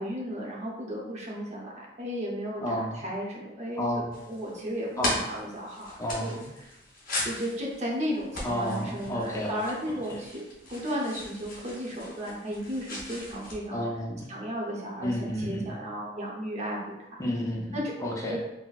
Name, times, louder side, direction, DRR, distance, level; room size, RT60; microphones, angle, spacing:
voice 1, 0.0-4.0 4.3-5.9 6.2-6.4 7.2-13.8 14.3-17.1 17.7-17.9 18.3-18.4, equal, 40° right, -2 dB, 0.7 m, -34 dB
voice 2, 2.6-3.0 3.8-4.2 5.0-5.1 6.0-6.5 8.4-9.5 10.1-10.2 13.7-14.3 15.0-15.7 17.2-18.4, equal, 15° left, -2 dB, 0.4 m, -31 dB
sound 1, 4.1-13.5, left 1 dB, 50° left, 0.8 m, -38 dB
4.0 x 2.0 x 2.3 m, 0.92 s
head